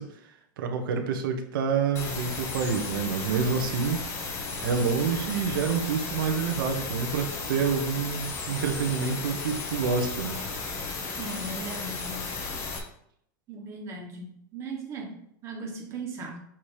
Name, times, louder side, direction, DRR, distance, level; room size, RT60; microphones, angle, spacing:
voice 1, 0.0-4.3 4.6-10.4, right 6 dB, 85° right, 3 dB, 1.0 m, -28 dB
sound 1, 2.0-12.8, left 4 dB, 25° left, 0.9 m, -34 dB
voice 2, 11.2-12.3 13.5-16.4, right 3 dB, 25° right, 0 dB, 1.3 m, -38 dB
7.2 x 2.9 x 4.9 m, 0.70 s
supercardioid pair, 165°, 11 cm